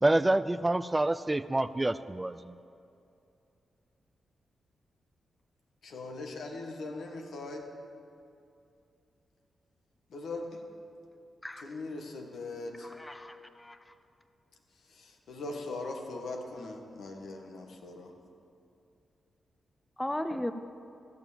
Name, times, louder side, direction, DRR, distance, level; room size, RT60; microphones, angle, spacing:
voice 1, 0.0-2.5, right 2 dB, 20° right, 15 dB, 0.4 m, -27 dB
voice 2, 5.8-7.7 10.1-10.6 11.6-12.9 15.4-18.1, left 2 dB, 75° left, 2 dB, 1.6 m, -40 dB
voice 3, 12.8-13.8 20.0-20.5, left 1 dB, 15° left, 10 dB, 0.8 m, -36 dB
14.0 x 7.1 x 7.2 m, 2.6 s
supercardioid pair, 45°, 0 cm